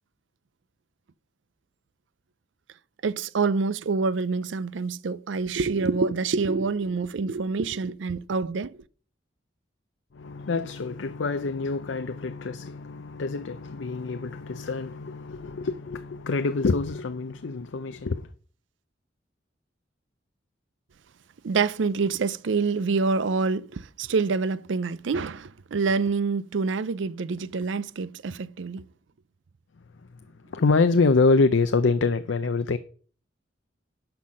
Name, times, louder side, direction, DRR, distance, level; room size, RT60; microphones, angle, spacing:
voice 1, 3.0-8.8 21.4-28.8, right 4 dB, 80° right, 0.5 m, -26 dB
voice 2, 10.1-18.3 30.5-32.8, left 3 dB, 85° left, 0.6 m, -25 dB
10.5 x 5.7 x 6.3 m
head